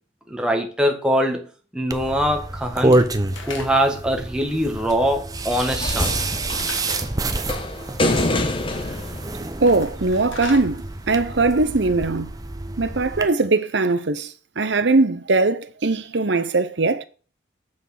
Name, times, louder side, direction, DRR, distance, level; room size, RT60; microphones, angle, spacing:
voice 1, 0.3-1.5 1.7-3.0 3.4-6.4, equal, 5° right, 1.4 m, -23 dB
sound 1, 1.9-13.3, right 2 dB, 20° right, 0.7 m, -27 dB
Slam / Wood, 2.8-4.1 6.6-7.1 9.5-10.7, left 4 dB, 90° left, 2.0 m, -37 dB
sound 2, 5.8-10.2 11.3-11.4, left 2 dB, 30° left, 1.0 m, -26 dB
voice 2, 9.6-12.3 12.8-17.0, right 3 dB, 70° right, 0.8 m, -20 dB
7.5 x 6.3 x 6.3 m
head